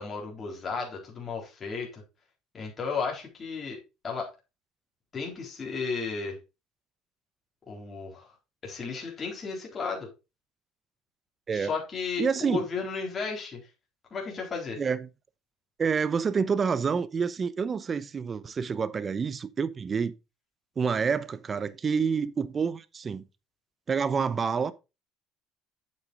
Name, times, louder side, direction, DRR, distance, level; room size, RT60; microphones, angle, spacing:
voice 1, 0.0-2.0 2.5-3.8 4.0-4.3 5.1-6.4 7.7-8.3 8.6-10.1 11.5-13.6 14.1-14.8, left 5 dB, 35° left, 3.9 m, -34 dB
voice 2, 12.2-12.6 14.8-15.1 15.8-20.1 20.8-23.3 23.9-24.7, right 6 dB, 35° right, 0.9 m, -28 dB
8.8 x 7.9 x 2.5 m
supercardioid pair, 90°, 0 cm